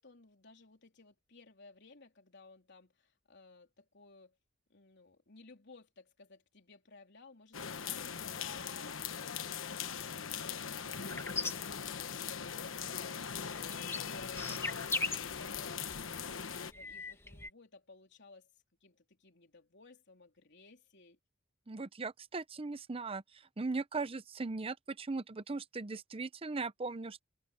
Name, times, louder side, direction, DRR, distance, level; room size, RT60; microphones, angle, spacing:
voice 1, 0.0-4.4 4.7-12.5 13.5-18.5 18.8-21.2, left 3 dB, 60° left, 3.6 m, -59 dB
sound 1, 7.5-16.7, left 7 dB, 75° left, 1.2 m, -40 dB
sound 2, 11.1-12.6 12.9-17.5, left 3 dB, 15° left, 1.4 m, -40 dB
voice 2, 21.7-23.2 23.6-27.2, right 3 dB, 30° right, 0.6 m, -38 dB
head